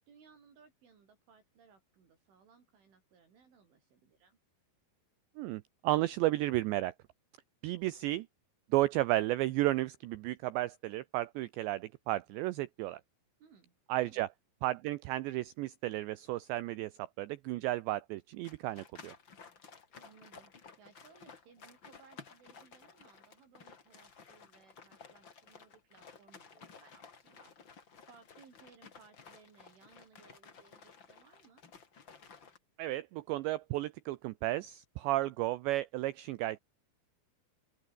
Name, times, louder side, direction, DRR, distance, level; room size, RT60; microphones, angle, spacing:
voice 1, 0.1-4.4 13.4-13.8 14.0-14.3 20.0-27.5 28.1-31.6, right 6 dB, 65° right, 7.6 m, -62 dB
voice 2, 5.4-6.9 7.6-8.3 8.7-13.0 13.9-14.3 14.6-19.1 32.8-36.6, right 17 dB, 85° right, 2.6 m, -33 dB
sound 1, 18.4-32.6, left 5 dB, 40° left, 1.8 m, -55 dB
open air
omnidirectional pair, 5.9 m